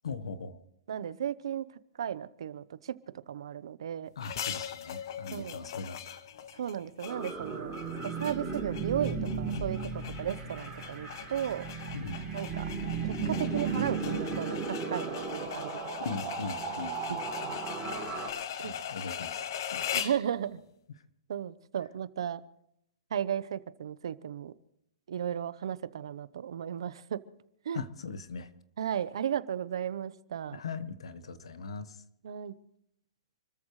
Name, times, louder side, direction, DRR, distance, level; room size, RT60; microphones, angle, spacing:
voice 1, 0.0-0.6 4.2-6.2 11.9-12.2 16.0-17.2 17.5-17.6 18.6-19.5 19.7-19.9 27.7-28.5 30.5-31.9, left 4 dB, 90° left, 12 dB, 1.4 m, -40 dB
voice 2, 0.9-1.6 2.0-2.9 3.3-4.1 5.3-5.6 6.6-7.7 8.0-9.8 10.2-11.7 12.3-12.7 13.0-15.7 17.1-17.5 18.6-18.7 19.9-20.6 21.3-22.4 23.1-24.5 25.1-27.2 27.6-27.8 28.8-30.6 32.2-32.5, right 9 dB, 65° right, 16 dB, 0.9 m, -35 dB
sound 1, 4.2-20.3, left 9 dB, 45° left, 0.8 m, -40 dB
sound 2, 7.0-18.3, right 5 dB, 5° right, 3.6 m, -35 dB
28.5 x 14.0 x 3.2 m, 0.77 s
hypercardioid pair, 170°, 3 cm